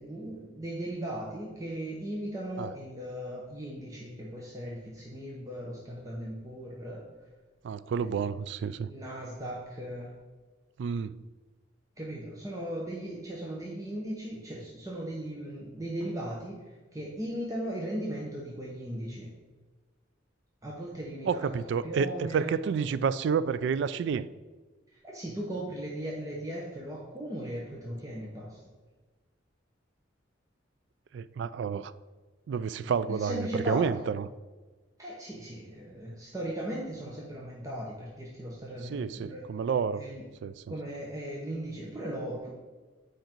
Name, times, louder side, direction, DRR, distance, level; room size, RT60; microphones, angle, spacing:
voice 1, 0.0-7.0 8.0-8.1 8.8-10.1 12.0-16.6 16.9-19.3 20.6-21.5 21.8-22.7 25.0-28.6 33.1-34.1 35.0-39.4 40.0-40.2 40.7-42.5, right 1 dB, 15° right, -4 dB, 0.9 m, -37 dB
voice 2, 7.6-8.9 10.8-11.2 21.3-24.3 31.1-31.9 32.5-34.3 38.8-40.0 40.4-40.6, right 6 dB, 65° right, 16 dB, 0.3 m, -30 dB
8.0 x 5.0 x 4.5 m, 1.3 s
head